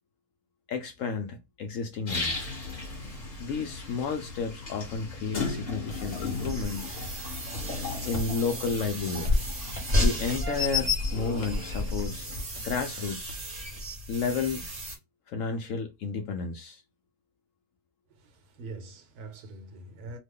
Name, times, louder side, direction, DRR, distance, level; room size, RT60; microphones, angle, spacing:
voice 1, 0.7-2.5 3.4-7.0 7.5-9.4 10.0-12.3 12.6-13.4 14.1-14.6 15.3-16.8, left 5 dB, 75° left, 0.7 m, -32 dB
sound 1, 2.1-12.4, left 3 dB, 30° left, 1.0 m, -38 dB
sound 2, 5.3-5.5 5.9-6.7 7.0-7.3 7.5-7.7 8.1-8.4 8.7-8.8 9.2-9.5 9.7-10.0 10.3-10.5 10.8-11.1 11.4-11.7 12.0-12.2 12.5-13.4, equal, 55° left, 1.1 m, -40 dB
sound 3, 5.9-15.0, left 2 dB, 40° right, 0.9 m, -31 dB
voice 2, 18.1-20.2, right 3 dB, 65° right, 1.3 m, -44 dB
3.0 x 2.1 x 3.4 m
omnidirectional pair, 1.8 m